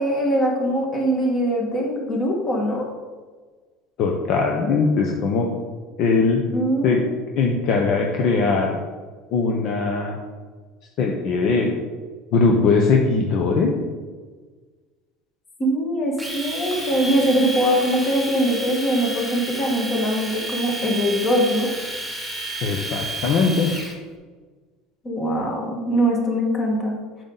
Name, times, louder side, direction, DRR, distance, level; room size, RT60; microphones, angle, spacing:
voice 1, 0.0-2.9 6.5-7.0 15.6-21.7 25.0-27.0, equal, 30° left, 0 dB, 2.0 m, -22 dB
voice 2, 4.0-5.5 6.0-6.4 6.8-7.0 7.4-8.8 9.3-10.2 11.0-11.7 12.3-13.7 22.6-23.7, left 4 dB, 50° left, 1 dB, 1.0 m, -20 dB
Domestic sounds home sounds, 16.2-23.9, right 1 dB, 5° right, 1.7 m, -31 dB
8.2 x 6.6 x 4.1 m, 1.4 s
cardioid pair, 145°, 0 cm